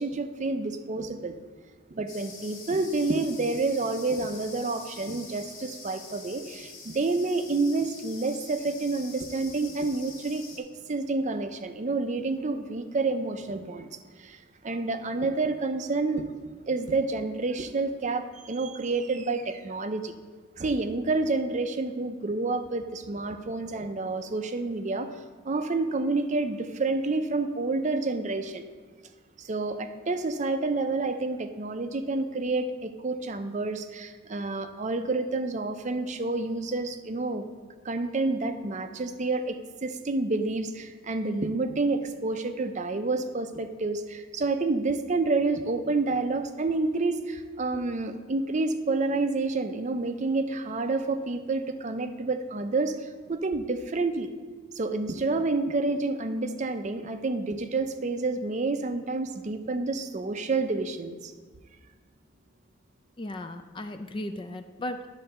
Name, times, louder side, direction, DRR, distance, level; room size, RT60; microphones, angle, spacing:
voice 1, 0.0-1.3 1.9-13.9 14.2-16.3 16.7-20.1 20.6-28.6 29.4-37.4 37.8-54.3 54.7-61.3, right 3 dB, 35° right, 9 dB, 0.5 m, -29 dB
sound 1, 2.1-10.6, left 4 dB, 80° left, 1.6 m, -46 dB
voice 2, 63.2-65.1, left 1 dB, 25° left, 9 dB, 0.4 m, -36 dB
10.5 x 4.0 x 6.7 m, 1.5 s
head